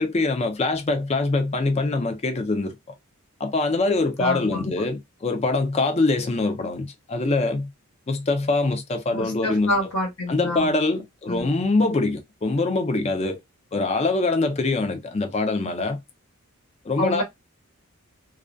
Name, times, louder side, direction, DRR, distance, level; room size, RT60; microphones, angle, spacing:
voice 1, 0.0-2.8 3.4-7.7 8.1-9.7 10.3-13.4 13.7-16.0 16.9-17.2, left 3 dB, 30° left, 0.4 m, -24 dB
voice 2, 4.2-4.9 9.1-10.7 11.3-11.6 17.0-17.2, left 1 dB, 85° left, 1.0 m, -28 dB
2.4 x 2.1 x 2.4 m
head